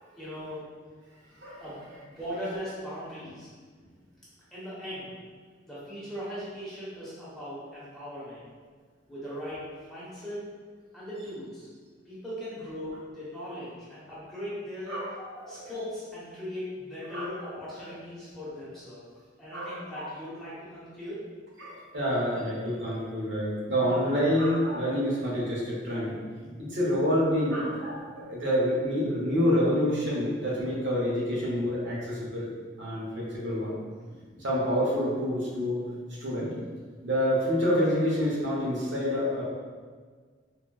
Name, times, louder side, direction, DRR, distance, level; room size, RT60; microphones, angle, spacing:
voice 1, 0.2-0.7 1.6-3.5 4.5-5.1 5.7-8.4 9.1-9.6 9.9-10.5 10.9-11.7 12.1-15.0 15.5-19.1 19.4-21.2 26.4-26.5 31.9-32.0, equal, ahead, -11 dB, 0.8 m, -39 dB
voice 2, 15.4-15.7 17.1-17.5 17.8-18.0 19.5-20.0 21.6-26.2 26.6-32.5 32.8-33.7 34.4-35.8 36.2-36.4 37.0-39.4, equal, 80° right, -6 dB, 0.8 m, -27 dB
3.8 x 2.1 x 2.3 m, 1.5 s
head